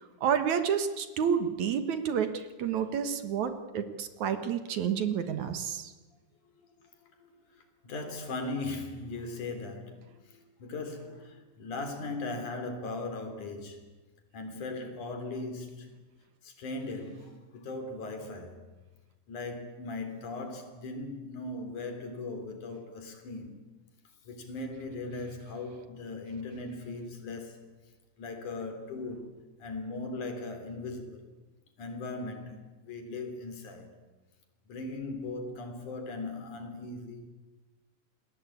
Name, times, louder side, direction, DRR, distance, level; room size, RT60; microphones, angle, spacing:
voice 1, 0.2-5.9, right 7 dB, 65° right, 2.7 m, -30 dB
voice 2, 7.8-13.8 14.3-15.9 16.4-18.7 19.3-23.6 24.3-27.7 28.2-31.2 31.8-32.6 32.9-33.9 34.7-37.3, left 3 dB, 70° left, 4.8 m, -38 dB
28.5 x 20.5 x 8.6 m
omnidirectional pair, 3.7 m